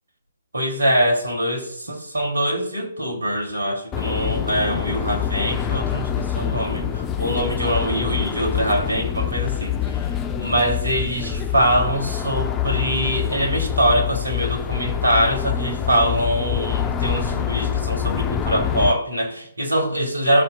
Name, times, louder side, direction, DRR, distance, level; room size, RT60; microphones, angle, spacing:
voice 1, 0.5-10.1 10.4-20.4, right 1 dB, 70° right, 3.0 m, -23 dB
sound 1, 3.9-18.9, left 9 dB, 15° left, 0.8 m, -25 dB
18.0 x 6.9 x 2.4 m
figure-of-eight pair, 130°, 0 cm